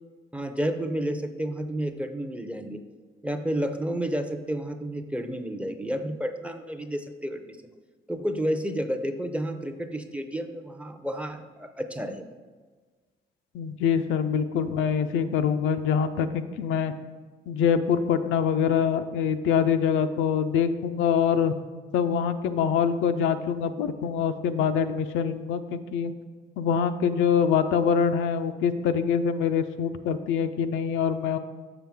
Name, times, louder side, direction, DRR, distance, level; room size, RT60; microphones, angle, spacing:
voice 1, 0.3-2.8 3.2-7.6 8.1-12.3, equal, 5° right, 7 dB, 0.5 m, -31 dB
voice 2, 13.5-16.9 17.5-21.5 21.9-26.1 26.6-31.4, left 7 dB, 85° left, 8 dB, 0.4 m, -24 dB
6.7 x 5.8 x 3.5 m, 1.4 s
cardioid pair, 90°, 20 cm